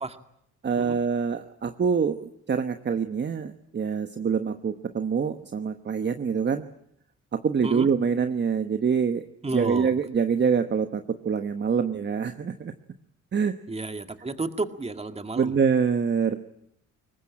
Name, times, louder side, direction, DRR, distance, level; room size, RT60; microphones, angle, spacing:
voice 1, 0.6-6.7 7.3-9.2 9.5-12.7 13.3-13.6 15.4-16.4, right 6 dB, 35° right, 9 dB, 1.2 m, -25 dB
voice 2, 9.4-9.9 13.7-15.5, right 3 dB, 20° right, 8 dB, 2.1 m, -31 dB
22.5 x 19.5 x 8.7 m, 0.75 s
cardioid pair, 90°, 30 cm